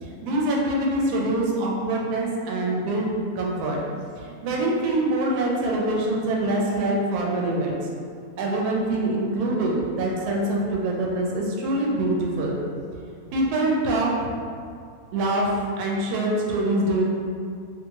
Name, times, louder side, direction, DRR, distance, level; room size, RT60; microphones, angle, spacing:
voice 1, 0.0-3.1 3.4-3.8 4.1-7.8 8.4-12.5 13.3-14.3 15.1-17.1, right 1 dB, 80° right, -2 dB, 1.1 m, -24 dB
2.7 x 2.4 x 2.7 m, 2.3 s
omnidirectional pair, 1.6 m